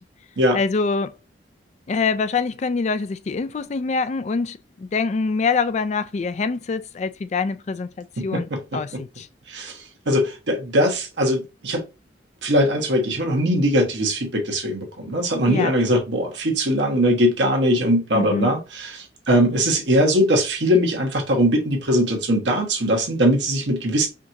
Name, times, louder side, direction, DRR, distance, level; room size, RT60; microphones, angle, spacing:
voice 1, 0.5-1.1 1.9-9.3 15.5-15.7 18.1-18.5, left 4 dB, 40° left, 0.3 m, -25 dB
voice 2, 8.2-8.8 9.5-11.8 12.4-24.1, equal, 80° right, 1.2 m, -21 dB
5.0 x 2.9 x 2.6 m
head